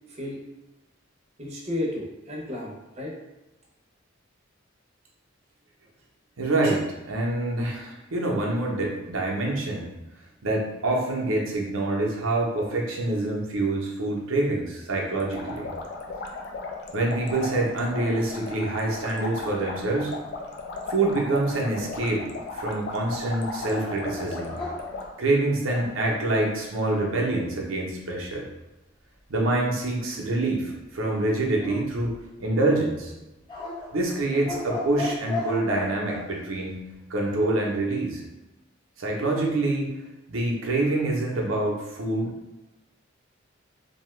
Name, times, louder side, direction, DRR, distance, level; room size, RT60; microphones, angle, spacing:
voice 1, 0.1-0.4 1.4-3.1, left 1 dB, 35° right, -2 dB, 0.7 m, -33 dB
voice 2, 6.4-9.9 10.4-15.7 16.9-20.1 20.9-24.6 25.2-28.4 29.3-32.1 32.4-33.1 33.9-36.8 37.1-38.2 39.0-39.9 40.3-42.3, right 2 dB, 85° right, -2 dB, 0.7 m, -26 dB
sound 1, 15.1-25.1, left 3 dB, 55° left, 0.4 m, -36 dB
sound 2, 23.6-26.2 31.6-32.5 33.5-36.2, left 3 dB, 25° left, 0.8 m, -35 dB
2.7 x 2.2 x 3.1 m, 1.0 s
head